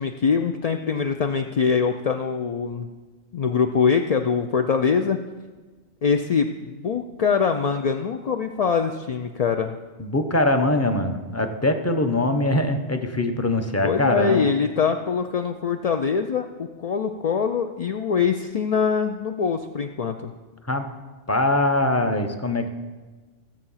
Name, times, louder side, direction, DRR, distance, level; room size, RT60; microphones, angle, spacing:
voice 1, 0.0-2.9 3.3-5.2 6.0-9.7 13.8-20.3, left 6 dB, 55° left, 6 dB, 0.4 m, -23 dB
voice 2, 10.0-14.5 20.7-20.9 21.3-22.7, left 1 dB, 15° left, 6 dB, 0.8 m, -22 dB
15.0 x 7.7 x 5.7 m, 1.3 s
omnidirectional pair, 1.2 m